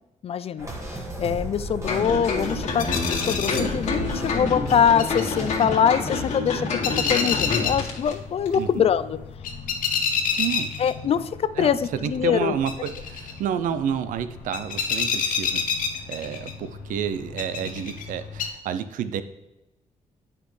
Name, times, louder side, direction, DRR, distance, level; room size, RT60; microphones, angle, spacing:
voice 1, 0.2-0.7 1.2-9.2 10.8-12.5, left 8 dB, 50° left, 14 dB, 0.4 m, -23 dB
sound 1, 0.6-5.6, right 1 dB, 20° right, 1.5 m, -34 dB
sound 2, 1.9-8.1 8.5-8.6, left 3 dB, 65° left, 1.9 m, -28 dB
sound 3, 2.5-18.5, left 6 dB, 85° left, 0.8 m, -30 dB
voice 2, 8.5-8.8 10.4-10.7 11.6-11.7 12.0-15.6 16.1-19.2, right 8 dB, 85° right, 12 dB, 0.5 m, -29 dB
8.3 x 5.8 x 3.2 m, 0.98 s
cardioid pair, 95°, 13 cm